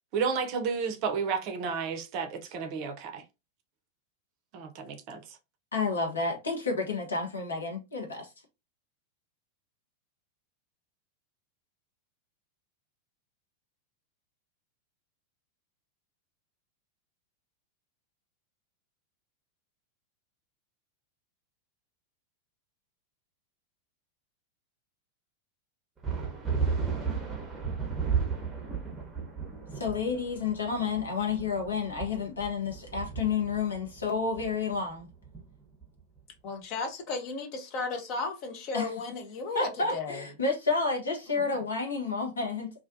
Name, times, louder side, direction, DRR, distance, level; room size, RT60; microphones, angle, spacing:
voice 1, 0.1-3.2 4.5-5.4, right 5 dB, 45° right, 0.5 m, -32 dB
voice 2, 5.7-8.3 29.7-35.1 38.7-38.9 39.5-42.7, left 4 dB, 70° left, 0.8 m, -30 dB
sound 1, 26.0-36.0, right 6 dB, 10° right, 0.8 m, -34 dB
voice 3, 36.4-40.3 41.3-41.5, left 3 dB, 40° left, 0.7 m, -35 dB
2.4 x 2.2 x 2.5 m
figure-of-eight pair, 90°, 0 cm